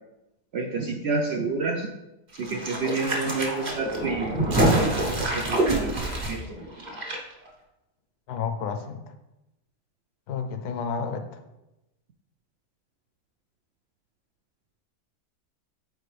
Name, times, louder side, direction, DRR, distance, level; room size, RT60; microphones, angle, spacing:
voice 1, 0.5-1.9 2.4-4.3 4.6-6.0 6.3-6.4, right 3 dB, 65° right, 2 dB, 0.6 m, -29 dB
sound 1, 2.3-7.2 7.4-7.5, right 1 dB, 30° right, 1.1 m, -26 dB
voice 2, 8.3-9.0 10.3-11.2, left 6 dB, 80° left, 7 dB, 1.2 m, -30 dB
8.4 x 4.3 x 3.3 m, 0.96 s
omnidirectional pair, 1.6 m